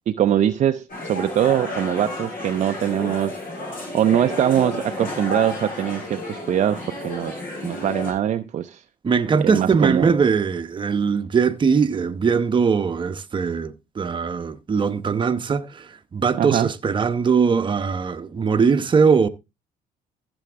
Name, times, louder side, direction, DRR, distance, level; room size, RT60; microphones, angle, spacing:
voice 1, 0.1-3.4 3.9-8.8 9.4-10.1 16.4-16.7, right 10 dB, 45° right, 0.6 m, -22 dB
sound 1, 0.9-8.1, left 2 dB, 55° left, 6.6 m, -32 dB
voice 2, 9.0-19.3, right 5 dB, 30° right, 1.0 m, -21 dB
14.5 x 7.1 x 3.5 m
cardioid pair, 110°, 17 cm